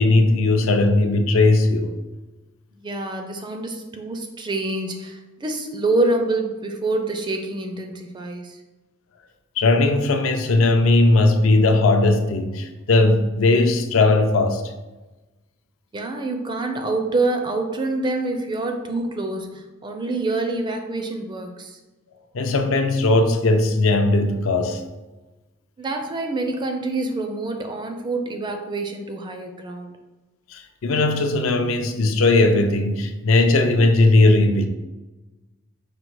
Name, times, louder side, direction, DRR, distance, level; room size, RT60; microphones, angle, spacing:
voice 1, 0.0-1.9 9.6-14.6 22.3-24.8 30.5-34.7, left 2 dB, 70° left, 0.5 m, -18 dB
voice 2, 2.8-8.6 15.9-21.8 25.8-29.9, right 2 dB, 20° right, 0.4 m, -26 dB
5.1 x 2.1 x 4.5 m
head